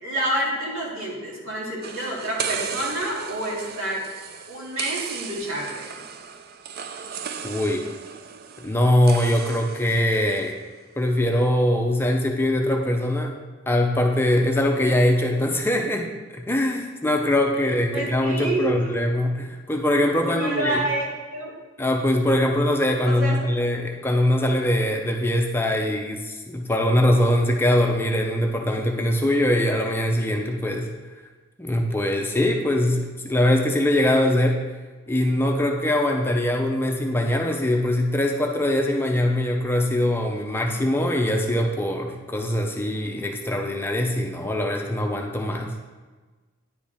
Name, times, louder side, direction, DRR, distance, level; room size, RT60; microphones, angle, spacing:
voice 1, 0.0-4.0 4.5-6.1 17.6-19.0 20.2-21.5 23.0-23.4, right 1 dB, 85° right, -4 dB, 2.2 m, -28 dB
sound 1, 1.8-10.5, right 7 dB, 45° right, 0.4 m, -36 dB
voice 2, 7.4-7.8 8.6-10.6 11.0-13.3 13.7-16.1 16.5-20.8 21.8-30.9 31.6-34.6 35.1-45.7, left 1 dB, 10° left, 2 dB, 0.5 m, -22 dB
9.8 x 5.1 x 3.4 m, 1.3 s
head